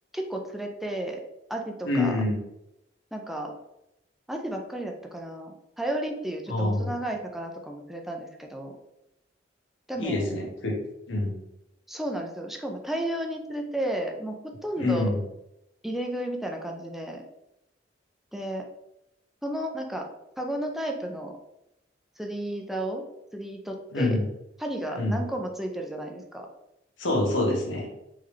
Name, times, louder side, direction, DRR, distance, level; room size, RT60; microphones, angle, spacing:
voice 1, 0.1-1.2 1.5-2.2 3.1-3.5 4.3-8.8 9.9-10.4 11.9-15.1 15.8-17.2 18.3-18.6 19.4-20.1 20.4-21.4 22.2-23.0 23.3-24.2 24.6-26.5, right 1 dB, ahead, 2 dB, 0.5 m, -33 dB
voice 2, 1.8-2.4 6.5-6.9 10.0-10.8 11.1-11.3 14.8-15.2 23.9-24.2 24.9-25.2 27.0-27.9, left 2 dB, 90° left, 1 dB, 1.0 m, -26 dB
3.8 x 3.3 x 3.2 m, 0.86 s
head